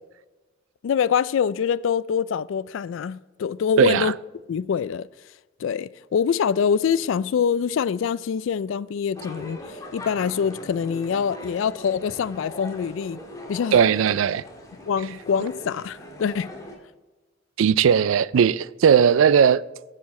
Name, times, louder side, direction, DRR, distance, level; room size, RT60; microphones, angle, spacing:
voice 1, 0.8-4.1 4.5-5.1 5.6-9.6 9.9-13.2 13.5-13.8 14.9-16.5, left 7 dB, 70° left, 0.3 m, -24 dB
voice 2, 3.8-4.1 13.7-14.4 17.6-19.6, right 7 dB, 90° right, 0.4 m, -18 dB
sound 1, 9.1-16.8, left 1 dB, 20° left, 1.6 m, -40 dB
10.5 x 7.5 x 4.2 m
head